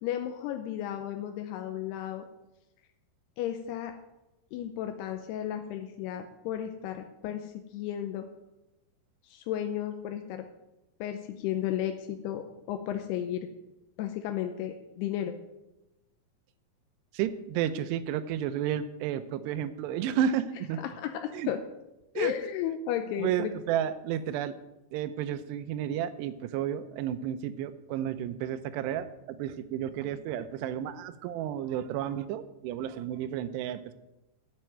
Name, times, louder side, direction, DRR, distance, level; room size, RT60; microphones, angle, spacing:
voice 1, 0.0-2.2 3.4-3.9 4.5-8.3 9.2-10.5 11.0-13.5 14.0-15.4 21.0-21.6 22.2-23.5 30.0-30.1, left 11 dB, 85° left, 6 dB, 2.6 m, -34 dB
voice 2, 17.1-20.8 21.3-21.5 22.2-22.3 23.2-24.5 24.9-33.9, right 10 dB, 85° right, 12 dB, 2.7 m, -32 dB
8.3 x 7.7 x 8.8 m, 0.95 s
omnidirectional pair, 4.9 m